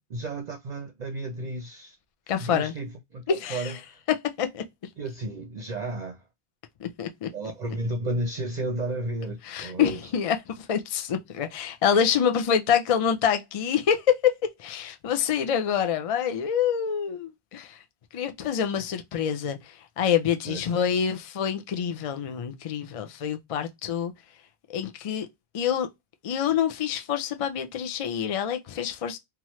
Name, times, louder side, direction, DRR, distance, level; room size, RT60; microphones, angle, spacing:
voice 1, 0.1-2.0 2.4-4.0 5.0-6.2 7.3-10.0 20.5-20.9, right 2 dB, 50° right, 0.5 m, -33 dB
voice 2, 2.3-2.7 3.3-3.8 4.4-4.6 6.8-7.3 9.4-17.8 18.1-24.1 24.7-25.3 25.5-25.9 26.2-29.2, left 8 dB, 55° left, 0.4 m, -26 dB
2.9 x 2.4 x 3.0 m
omnidirectional pair, 1.1 m